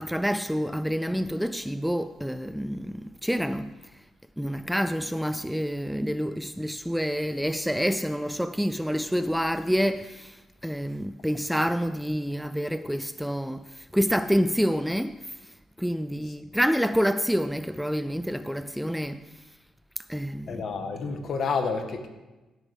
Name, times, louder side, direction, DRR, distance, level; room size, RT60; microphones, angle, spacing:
voice 1, 0.0-3.8 4.4-10.4 10.6-15.3 15.8-19.2 20.1-20.6, equal, ahead, 0.3 m, -27 dB
voice 2, 20.5-22.1, left 4 dB, 55° left, 1.4 m, -29 dB
15.5 x 8.1 x 3.5 m
cardioid pair, 90°, 0 cm